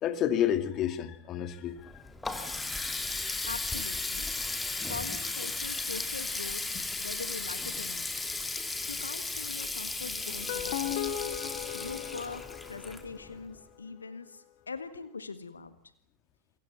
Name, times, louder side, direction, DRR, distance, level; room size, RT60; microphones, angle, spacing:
voice 1, 0.0-2.0, left 10 dB, 35° left, 2.4 m, -30 dB
Water tap faucet, 1.8-13.5, left 3 dB, 10° left, 2.6 m, -35 dB
voice 2, 3.4-4.3 4.9-6.6 7.0-8.2 8.9-11.1 11.7-15.8, left 4 dB, 75° left, 1.6 m, -42 dB
sound 1, 10.3-13.4, left 11 dB, 50° left, 2.3 m, -37 dB
28.5 x 24.0 x 7.4 m
figure-of-eight pair, 90°, 0 cm